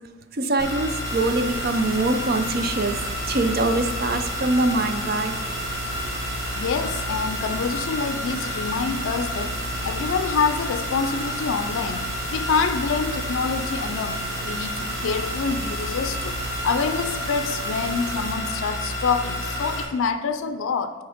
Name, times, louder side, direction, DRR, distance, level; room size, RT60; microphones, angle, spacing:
voice 1, 0.3-5.5, right 2 dB, 50° right, 0.5 m, -24 dB
sound 1, 0.6-19.8, left 1 dB, 15° left, 1.4 m, -30 dB
sound 2, 1.0-18.4, right 3 dB, 85° right, 0.7 m, -36 dB
voice 2, 6.6-12.1 12.3-16.4 16.6-20.9, left 5 dB, 75° left, 0.4 m, -26 dB
6.8 x 4.6 x 5.0 m
head